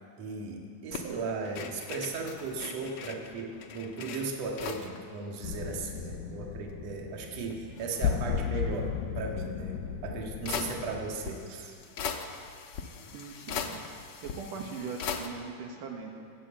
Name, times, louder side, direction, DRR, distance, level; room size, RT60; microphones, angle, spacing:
voice 1, 0.2-9.8 10.0-11.8, right 4 dB, 55° right, 0 dB, 2.7 m, -36 dB
sound 1, 0.9-5.0 5.3-5.4 5.6-6.7 7.2-8.5 9.7-9.8 10.5-15.3, left 6 dB, 65° left, 1.4 m, -40 dB
sound 2, 5.4-11.2, left 7 dB, 85° left, 2.4 m, -35 dB
voice 2, 13.1-13.8 14.2-16.2, right 5 dB, 80° right, 1 dB, 2.8 m, -40 dB
21.5 x 7.7 x 8.7 m, 2.5 s
omnidirectional pair, 3.7 m